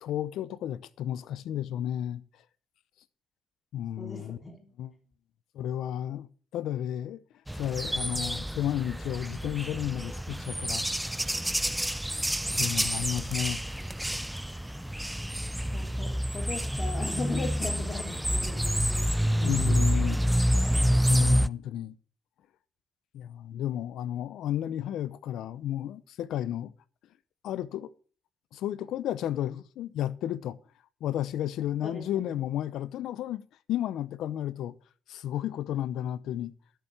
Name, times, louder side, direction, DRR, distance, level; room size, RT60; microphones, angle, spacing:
voice 1, 0.0-2.2 3.7-4.4 4.8-4.9 5.5-6.3 6.5-7.2 7.6-10.9 12.5-13.6 19.4-20.2 20.8-22.0 23.1-26.7 27.4-27.9 28.5-30.6 31.0-34.8 35.1-36.5, left 11 dB, 80° left, 0.7 m, -32 dB
voice 2, 4.0-4.7 15.7-19.1 19.4-20.2 31.8-32.4, left 3 dB, 35° left, 3.6 m, -39 dB
sound 1, 7.5-21.5, equal, 5° right, 0.4 m, -28 dB
12.0 x 6.9 x 6.7 m
cardioid pair, 90°, 0 cm